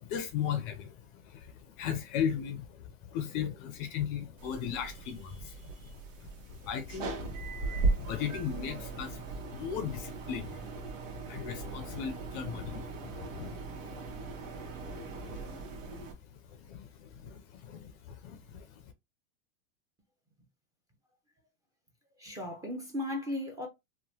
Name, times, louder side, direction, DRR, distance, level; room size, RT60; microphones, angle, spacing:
voice 1, 0.0-0.9 1.3-2.8 3.1-5.9 6.6-7.2 7.5-10.6 11.3-13.5 15.0-15.6 16.5-18.6, left 8 dB, 40° left, 0.5 m, -37 dB
sound 1, 4.4-16.1, right 3 dB, 70° right, 1.1 m, -38 dB
voice 2, 22.2-23.7, left 1 dB, 10° right, 0.5 m, -36 dB
2.9 x 2.1 x 2.7 m
supercardioid pair, 135°, 40 cm